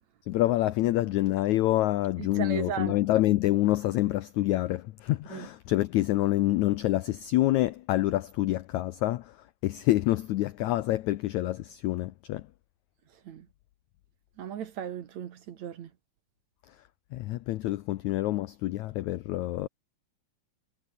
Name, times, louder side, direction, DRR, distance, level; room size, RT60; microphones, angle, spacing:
voice 1, 0.3-12.5 16.7-16.8 17.1-19.7, left 16 dB, 90° left, 1.6 m, -27 dB
voice 2, 2.2-3.0 5.3-5.5 13.2-13.5 14.4-15.9, right 9 dB, 60° right, 2.4 m, -36 dB
omnidirectional pair, 4.2 m